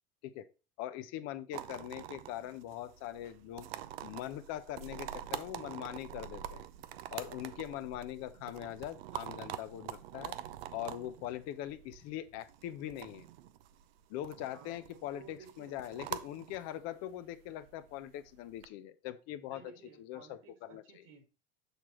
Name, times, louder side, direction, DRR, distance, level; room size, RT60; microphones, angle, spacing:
voice 1, 0.8-3.7 4.0-6.6 7.1-10.4 10.7-13.3 14.1-19.7 20.0-20.8, left 12 dB, 60° left, 12 dB, 0.8 m, -42 dB
sound 1, 1.5-18.7, right 12 dB, 80° right, 0.6 m, -46 dB
voice 2, 7.1-7.6 14.5-15.8 19.5-21.2, right 6 dB, 60° right, 6 dB, 2.0 m, -56 dB
6.7 x 6.0 x 3.1 m, 0.31 s
hypercardioid pair, 80°, 29 cm